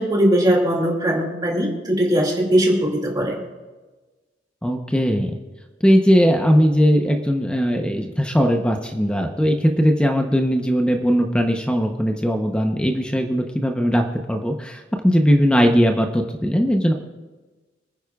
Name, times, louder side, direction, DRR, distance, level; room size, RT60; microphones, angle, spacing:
voice 1, 0.0-3.4, equal, 20° right, -1 dB, 2.4 m, -20 dB
voice 2, 4.6-5.3 5.8-16.9, equal, 5° left, 3 dB, 0.8 m, -19 dB
25.5 x 9.7 x 2.4 m, 1.2 s
head